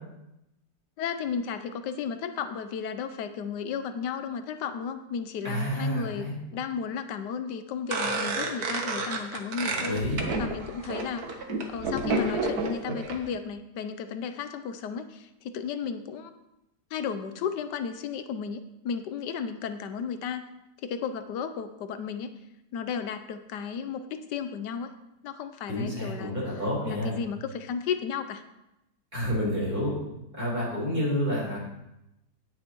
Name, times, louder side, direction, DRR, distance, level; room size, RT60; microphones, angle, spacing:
voice 1, 1.0-16.3 16.9-20.4 20.8-22.3 22.7-24.9 25.2-26.3 26.8-28.4, left 6 dB, 85° left, 10 dB, 1.3 m, -34 dB
voice 2, 5.4-6.4 9.7-10.2 25.7-27.2 29.1-29.9 30.3-31.6, equal, 30° right, -6 dB, 4.5 m, -29 dB
sound 1, 7.9-13.2, right 2 dB, 65° right, 1.6 m, -30 dB
18.0 x 6.4 x 3.0 m, 0.89 s
omnidirectional pair, 1.8 m